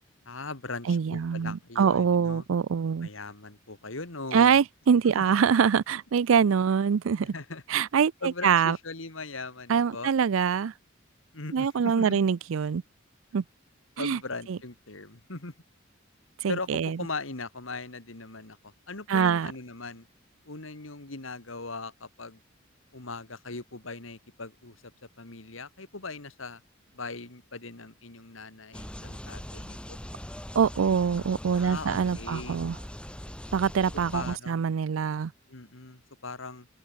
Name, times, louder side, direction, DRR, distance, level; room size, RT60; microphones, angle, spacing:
voice 1, 0.3-2.4 3.0-4.6 5.1-5.3 7.3-7.6 8.2-10.1 11.3-12.2 14.0-15.5 16.5-16.7 17.0-20.1 20.4-22.4 22.9-24.9 25.2-26.6 26.9-30.0 31.5-32.6 34.1-34.7 35.5-36.7, left 3 dB, 75° left, 2.6 m, -39 dB
voice 2, 0.9-3.1 4.3-7.3 7.7-8.8 9.7-10.7 11.5-12.8 13.3-13.4 14.0-14.2 14.5-14.6 16.4-17.0 19.1-19.5 30.6-32.8 33.5-35.3, right 6 dB, 80° right, 0.4 m, -24 dB
sound 1, 28.7-34.4, equal, 5° left, 1.7 m, -41 dB
open air
head